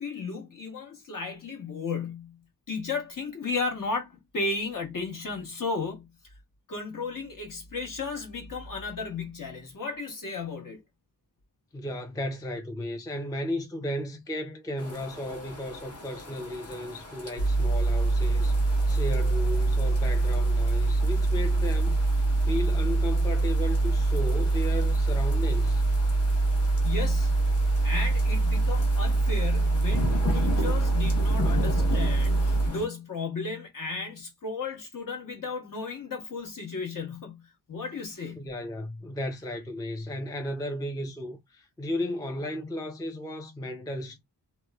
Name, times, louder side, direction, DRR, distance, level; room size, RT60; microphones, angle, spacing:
voice 1, 0.0-2.4 2.7-6.1 6.7-10.8 26.8-27.4 27.8-37.4 37.7-38.4, left 4 dB, 50° left, 1.0 m, -34 dB
voice 2, 11.7-22.0 22.4-25.8 38.4-44.2, left 1 dB, 10° left, 0.4 m, -34 dB
sound 1, 14.8-32.9, left 3 dB, 35° left, 0.8 m, -38 dB
sound 2, 17.4-32.7, right 2 dB, 85° left, 0.7 m, -24 dB
3.0 x 2.0 x 2.2 m
wide cardioid pair, 130°, 40 cm